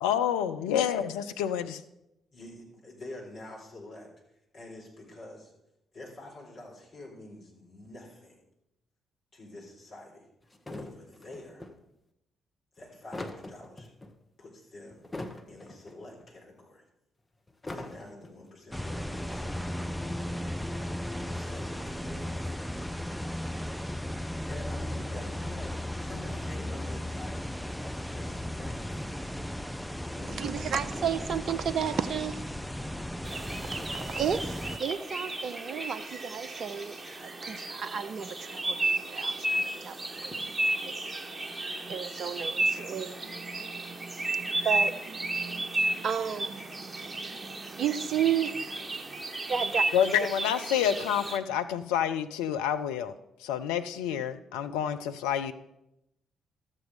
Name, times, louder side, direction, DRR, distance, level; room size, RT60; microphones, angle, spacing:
voice 1, 0.0-1.8 49.9-53.1 53.4-55.5, left 9 dB, 75° left, 0.5 m, -28 dB
voice 2, 2.3-4.1 4.5-5.5 5.9-8.4 9.3-10.3 10.7-11.7 12.7-13.9 14.4-15.1 15.5-16.8 17.7-20.7 21.3-22.8 24.5-27.5 27.8-28.9 30.1-30.7, left 2 dB, 50° left, 4.1 m, -47 dB
sound 1, 10.5-11.7 12.8-14.1 14.9-16.3 17.5-18.5, left 2 dB, 25° left, 1.4 m, -41 dB
sound 2, 18.7-34.8, left 1 dB, 5° left, 0.6 m, -36 dB
voice 3, 30.3-49.2 49.5-49.8, right 8 dB, 55° right, 0.6 m, -34 dB
sound 3, 33.3-51.4, right 2 dB, 25° right, 1.3 m, -33 dB
13.0 x 7.6 x 4.8 m
figure-of-eight pair, 40°, 0 cm